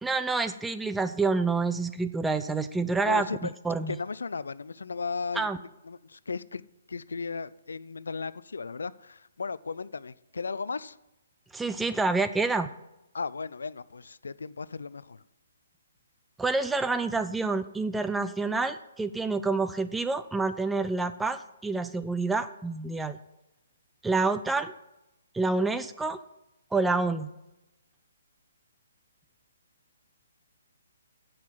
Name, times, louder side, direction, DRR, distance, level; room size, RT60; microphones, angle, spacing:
voice 1, 0.0-3.3 3.6-4.0 5.4-5.6 11.5-12.7 16.4-23.2 24.0-24.7 25.3-26.2 26.7-27.3, right 3 dB, 5° right, 10 dB, 0.4 m, -28 dB
voice 2, 3.0-3.5 3.9-6.6 6.9-11.0 13.1-15.2, left 4 dB, 70° left, 18 dB, 0.5 m, -36 dB
10.0 x 7.8 x 7.6 m, 0.93 s
figure-of-eight pair, 130°, 0 cm